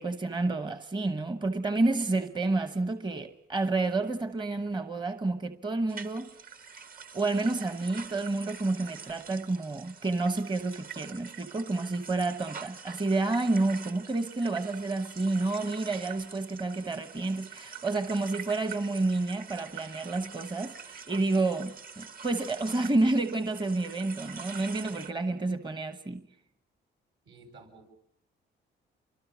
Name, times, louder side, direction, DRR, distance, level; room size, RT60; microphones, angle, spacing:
voice 1, 0.0-6.3 7.1-26.2, right 2 dB, 25° right, 1.1 m, -29 dB
sound 1, 5.9-25.1, right 6 dB, 45° right, 1.5 m, -45 dB
voice 2, 27.2-27.9, right 3 dB, 70° right, 7.2 m, -52 dB
28.0 x 24.5 x 6.3 m
cardioid pair, 90°, 20 cm